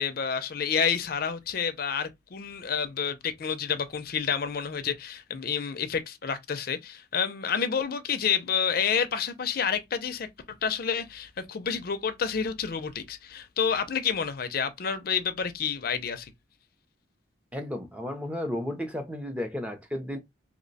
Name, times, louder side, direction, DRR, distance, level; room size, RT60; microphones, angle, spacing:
voice 1, 0.0-16.3, left 7 dB, 50° left, 0.4 m, -29 dB
voice 2, 17.5-20.2, left 1 dB, 5° right, 0.5 m, -33 dB
3.0 x 2.1 x 3.9 m
head